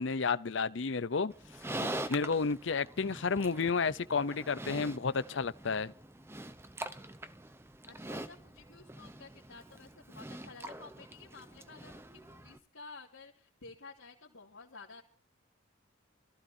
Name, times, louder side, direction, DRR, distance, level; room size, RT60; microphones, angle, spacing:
voice 1, 0.0-1.3 1.8-5.9, left 5 dB, 60° left, 0.6 m, -31 dB
Livestock farm animals working animals, 1.3-12.6, right 1 dB, 10° right, 0.7 m, -44 dB
voice 2, 7.9-15.0, left 3 dB, 80° left, 3.0 m, -52 dB
24.0 x 15.0 x 2.8 m
head